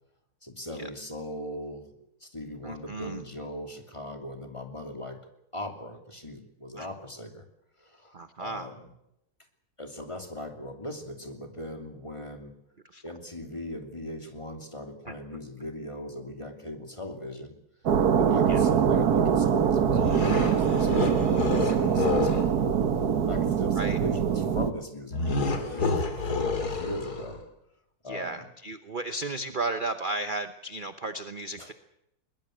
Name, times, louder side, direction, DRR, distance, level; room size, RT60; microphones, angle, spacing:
voice 1, 0.4-5.2 5.5-7.4 7.8-8.9 9.8-12.6 13.0-17.6 18.2-22.7 23.2-27.4 28.0-28.5 31.6-31.7, left 1 dB, 20° left, 5 dB, 3.0 m, -39 dB
voice 2, 2.6-3.2 6.8-6.9 8.1-8.7 12.9-13.0 18.5-18.7 23.8-24.0 28.0-31.7, right 2 dB, 35° right, 9 dB, 1.0 m, -34 dB
sound 1, 17.9-24.7, right 7 dB, 80° right, 1.7 m, -23 dB
sound 2, 19.9-22.5 25.1-27.4, left 4 dB, 80° left, 3.3 m, -29 dB
22.0 x 20.5 x 7.8 m, 0.81 s
omnidirectional pair, 1.7 m